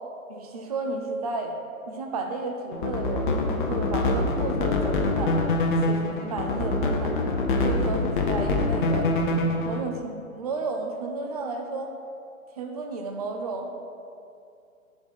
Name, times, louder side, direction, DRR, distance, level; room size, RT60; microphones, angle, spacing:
voice 1, 0.3-1.5 1.9-5.4 5.8-9.1 9.6-11.9 12.6-13.7, right 3 dB, 30° right, 3 dB, 0.4 m, -32 dB
sound 1, 2.7-9.8, left 2 dB, 35° left, 0.7 m, -25 dB
9.0 x 4.8 x 4.1 m, 2.5 s
figure-of-eight pair, 135°, 42 cm